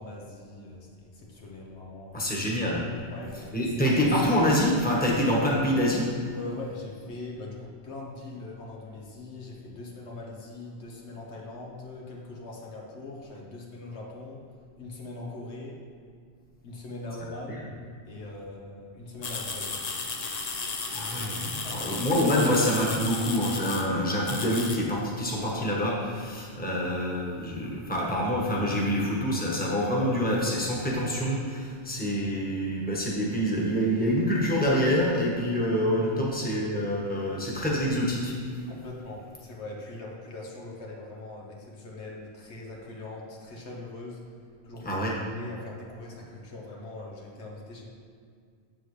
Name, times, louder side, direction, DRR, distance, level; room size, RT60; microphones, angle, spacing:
voice 1, 0.0-2.3 3.1-3.9 6.3-14.4 14.8-15.8 16.6-17.7 18.1-19.8 21.6-22.0 38.7-44.2 44.6-47.9, left 2 dB, 75° left, -2 dB, 1.3 m, -41 dB
voice 2, 2.1-2.8 3.5-6.1 17.5-17.6 20.9-38.6 44.8-45.1, equal, 10° left, -4 dB, 1.2 m, -26 dB
sound 1, 19.2-23.9 24.2-24.8, left 4 dB, 40° left, 0.7 m, -34 dB
7.8 x 7.5 x 3.2 m, 2.2 s
omnidirectional pair, 1.2 m